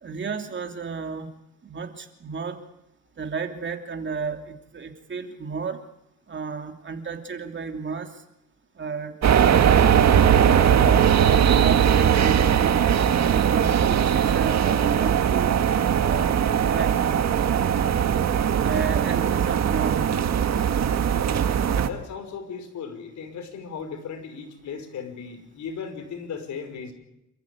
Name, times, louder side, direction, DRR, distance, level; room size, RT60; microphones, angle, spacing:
voice 1, 0.0-2.6 3.2-5.8 6.3-8.2 8.8-9.9 10.3-12.8 13.2-15.6 16.0-17.2 18.6-20.2, right 5 dB, 40° right, 5 dB, 2.8 m, -33 dB
sound 1, 9.2-21.9, right 8 dB, 60° right, 1.8 m, -20 dB
voice 2, 21.8-26.9, left 6 dB, 70° left, 6 dB, 5.6 m, -36 dB
28.5 x 15.0 x 8.4 m, 0.87 s
cardioid pair, 90°, 30 cm